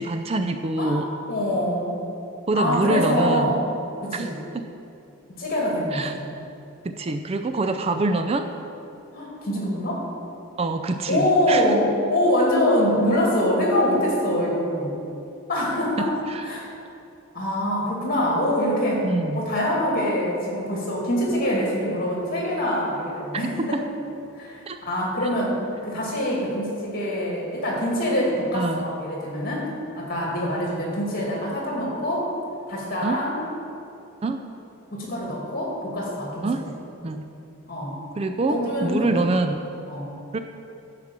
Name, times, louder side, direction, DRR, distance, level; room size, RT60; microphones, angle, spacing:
voice 1, 0.0-1.1 2.5-3.5 4.1-4.3 4.5-4.7 5.9-6.2 6.8-8.5 10.6-11.7 16.3-16.4 19.0-19.5 23.6-23.8 24.7-24.8 28.5-28.9 33.0-33.2 34.2-34.4 36.4-36.7 37.0-37.3 38.2-39.6 40.3-40.4, right 2 dB, 30° right, 7 dB, 0.3 m, -25 dB
voice 2, 1.3-1.9 2.5-3.7 4.0-4.4 5.4-6.4 9.1-10.1 11.1-15.0 15.5-16.2 16.4-16.7 17.3-19.1 19.3-23.8 24.4-29.7 30.0-32.3 32.7-33.4 34.9-36.5 37.7-38.0 38.5-39.1 39.9-40.1, equal, 45° left, -3 dB, 2.5 m, -24 dB
11.0 x 5.0 x 7.4 m, 2.7 s
head